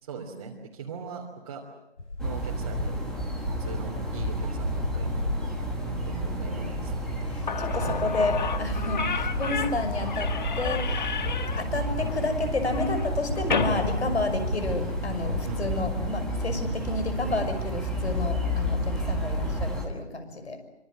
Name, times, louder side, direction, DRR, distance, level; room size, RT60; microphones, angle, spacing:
voice 1, 0.0-1.6 2.2-3.3 3.6-6.9 7.8-8.2 15.4-16.1, right 5 dB, 25° right, -2 dB, 2.9 m, -40 dB
sound 1, 2.0-3.1 3.4-15.7, left 2 dB, 85° left, 4.5 m, -35 dB
sound 2, 2.2-19.9, equal, ahead, 1.2 m, -31 dB
voice 2, 7.2-11.2 11.6-20.6, left 2 dB, 70° left, 10 dB, 5.9 m, -31 dB
Slam / Squeak, 7.2-7.3 7.5-14.9, left 6 dB, 40° left, 1.5 m, -32 dB
27.0 x 25.5 x 7.6 m, 0.90 s
figure-of-eight pair, 165°, 34 cm